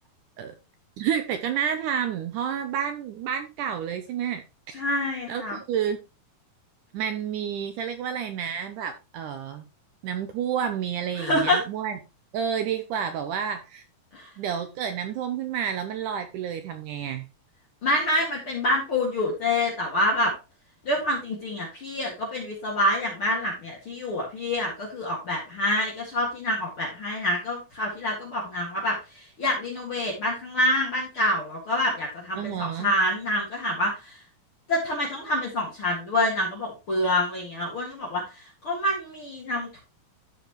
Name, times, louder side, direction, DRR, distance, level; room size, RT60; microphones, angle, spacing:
voice 1, 1.0-4.8 5.3-6.0 6.9-9.7 10.0-12.0 12.3-13.8 14.4-17.3 32.4-32.9, right 8 dB, 75° right, 8 dB, 1.9 m, -30 dB
voice 2, 4.7-5.6 11.2-11.6 14.1-14.3 17.8-20.3 20.8-34.2 34.7-39.8, left 1 dB, 40° left, -3 dB, 2.5 m, -27 dB
13.5 x 5.1 x 3.1 m, 0.27 s
omnidirectional pair, 4.3 m